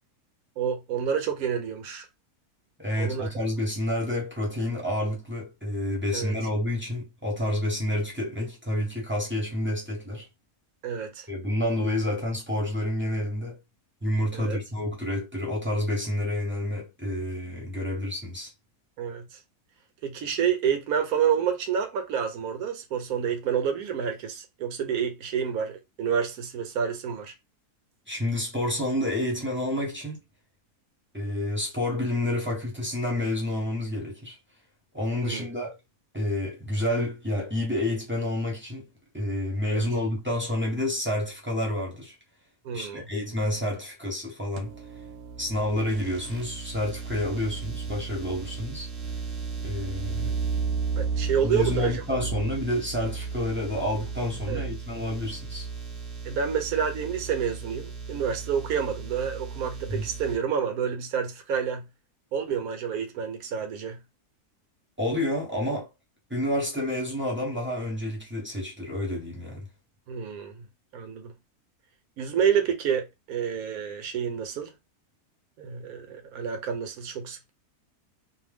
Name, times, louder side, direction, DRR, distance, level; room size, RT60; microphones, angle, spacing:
voice 1, 0.6-2.1 3.0-3.3 6.1-6.4 10.8-11.3 14.3-14.6 19.0-19.4 20.0-27.3 35.2-35.5 39.7-39.8 42.6-43.0 51.0-52.2 54.5-54.6 56.2-61.8 62.3-64.0 70.1-70.6 70.9-71.3 72.2-74.7 75.6-77.5, right 7 dB, 75° right, 1.1 m, -29 dB
voice 2, 2.8-10.3 11.3-13.6 14.0-18.5 28.1-30.2 31.1-34.4 34.9-35.8 36.1-38.9 39.1-42.1 42.7-44.7 45.4-48.9 49.6-50.4 51.4-55.7 59.9-60.1 65.0-65.9 66.3-69.6, left 1 dB, 10° right, 0.6 m, -29 dB
sound 1, 44.6-60.4, right 5 dB, 50° right, 0.9 m, -34 dB
2.7 x 2.1 x 3.4 m
omnidirectional pair, 1.6 m